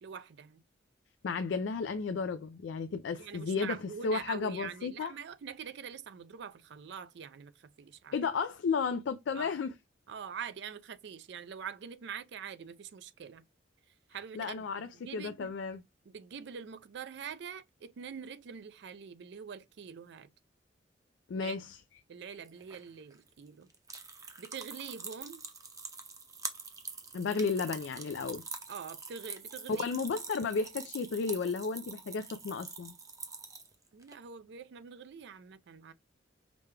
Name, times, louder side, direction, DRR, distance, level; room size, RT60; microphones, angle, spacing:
voice 1, 0.0-0.6 3.2-8.2 9.4-9.5 10.1-13.4 14.1-15.5 16.1-20.3 21.4-21.6 22.1-23.7 24.4-25.4 28.7-30.0 33.9-35.9, right 7 dB, 65° right, 0.4 m, -44 dB
voice 2, 1.2-3.8 4.0-5.1 8.1-9.7 14.4-15.8 21.3-21.8 27.1-28.4 29.7-32.9, left 5 dB, 75° left, 0.4 m, -33 dB
sound 1, 22.4-34.1, right 4 dB, 20° right, 0.6 m, -45 dB
5.1 x 2.2 x 3.2 m
head